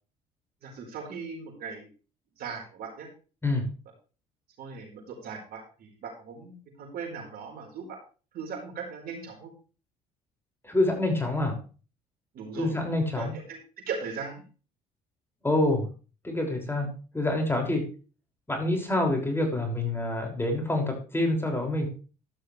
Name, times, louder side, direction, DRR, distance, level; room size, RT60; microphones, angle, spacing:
voice 1, 0.6-1.9 2.4-3.1 4.6-8.0 8.3-9.5 12.3-12.7 13.2-13.6 13.9-14.4, right 5 dB, 65° right, 1 dB, 4.6 m, -38 dB
voice 2, 10.6-11.6 12.5-13.3 15.4-15.9 16.2-17.8 18.5-21.9, left 1 dB, 15° left, 2 dB, 5.9 m, -27 dB
14.0 x 11.5 x 3.3 m, 0.36 s
hypercardioid pair, 65°, 17 cm